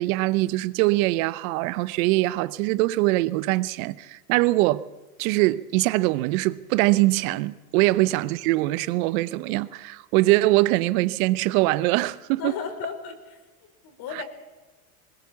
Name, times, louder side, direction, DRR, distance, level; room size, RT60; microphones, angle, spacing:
voice 1, 0.0-4.9 5.2-12.5, right 19 dB, 60° right, 0.9 m, -22 dB
voice 2, 12.4-13.4 13.8-14.2, left 7 dB, 50° left, 4.9 m, -34 dB
21.0 x 20.5 x 7.2 m
hypercardioid pair, 105°, 45 cm